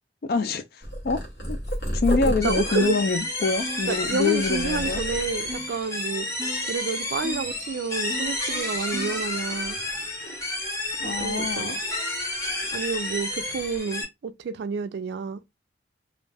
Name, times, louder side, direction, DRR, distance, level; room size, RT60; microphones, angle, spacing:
voice 1, 0.3-0.6 1.0-1.2 1.5-1.6 1.9-5.0 11.0-11.8, left 4 dB, 55° left, 0.4 m, -25 dB
Purr, 0.8-5.6 6.2-6.7 6.9-8.2 8.6-10.6 10.9-12.2 12.5-12.8 13.5-13.8, equal, 75° left, 1.0 m, -34 dB
voice 2, 2.2-3.0 3.9-6.3 6.7-9.8 11.0-11.8 12.7-15.4, right 5 dB, 70° right, 0.3 m, -30 dB
sound 1, 2.4-14.0, left 2 dB, 15° left, 0.7 m, -30 dB
sound 2, 2.8-3.1 3.6-3.9 4.5-4.7 5.5-5.8 6.4-6.6 7.2-7.5 8.1-8.4 8.9-9.2, right 1 dB, 25° right, 0.6 m, -37 dB
2.4 x 2.0 x 3.3 m
head